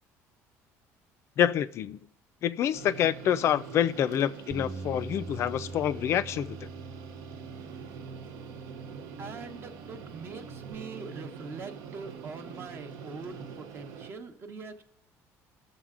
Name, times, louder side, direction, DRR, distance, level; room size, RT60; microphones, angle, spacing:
voice 1, 1.4-2.0 2.4-6.7, left 10 dB, 50° left, 13 dB, 0.3 m, -27 dB
sound 1, 2.7-14.1, right 6 dB, 80° right, 0.7 m, -44 dB
Bass guitar, 4.5-10.8, right 3 dB, 10° right, 0.5 m, -44 dB
voice 2, 9.2-14.8, right 4 dB, 40° right, 8 dB, 0.8 m, -43 dB
15.5 x 6.5 x 2.4 m, 0.80 s
cardioid pair, 140°, 6 cm